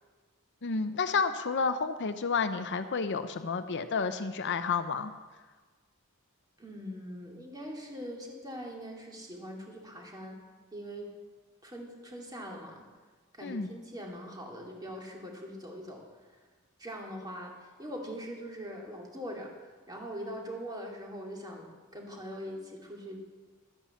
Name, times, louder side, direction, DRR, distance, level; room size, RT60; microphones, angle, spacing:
voice 1, 0.6-5.1 13.4-13.7, left 5 dB, 55° left, 10 dB, 0.7 m, -30 dB
voice 2, 6.6-10.4 10.7-11.1 11.6-12.8 13.3-16.3 16.8-23.2, equal, 20° right, -1 dB, 2.5 m, -42 dB
12.0 x 10.0 x 7.3 m, 1.3 s
head